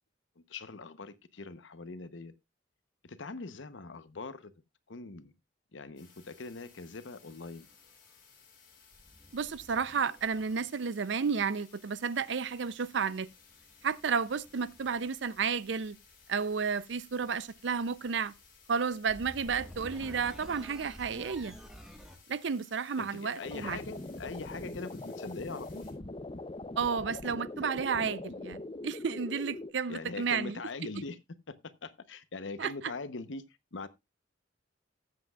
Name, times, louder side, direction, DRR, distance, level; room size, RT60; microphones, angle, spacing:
voice 1, 0.4-2.3 3.0-4.5 4.9-5.3 5.7-7.7 23.0-25.8 29.9-31.2 31.5-33.4 33.7-33.9, left 3 dB, 80° left, 0.9 m, -42 dB
sound 1, 6.0-25.9, left 6 dB, 50° left, 5.2 m, -60 dB
sound 2, 7.6-7.7 8.9-11.0 12.9-22.2, equal, 5° right, 1.5 m, -52 dB
voice 2, 9.3-13.3 13.8-16.0 16.3-18.3 18.7-21.5 22.3-23.8 26.8-30.6 32.6-32.7, right 6 dB, 70° right, 0.5 m, -32 dB
sound 3, 23.4-29.7, left 2 dB, 30° left, 0.6 m, -42 dB
18.5 x 7.6 x 2.3 m
head